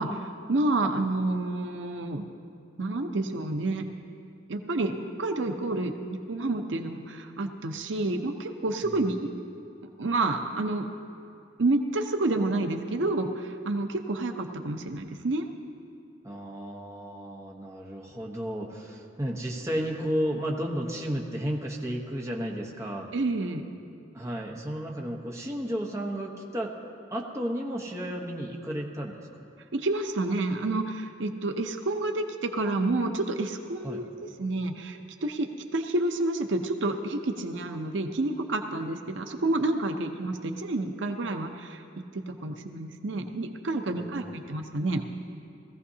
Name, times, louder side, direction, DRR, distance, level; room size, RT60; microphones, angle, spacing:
voice 1, 0.0-2.2 2.8-3.9 4.5-9.3 10.0-10.9 11.6-15.5 23.1-23.6 29.7-34.0 34.4-35.5 35.7-41.8 42.1-45.0, right 2 dB, 85° right, 5 dB, 0.7 m, -29 dB
voice 2, 16.2-23.1 24.1-26.7 27.1-29.3 33.8-34.0 43.9-44.4, equal, 15° right, -2 dB, 1.2 m, -33 dB
19.5 x 15.0 x 2.8 m, 2.4 s
head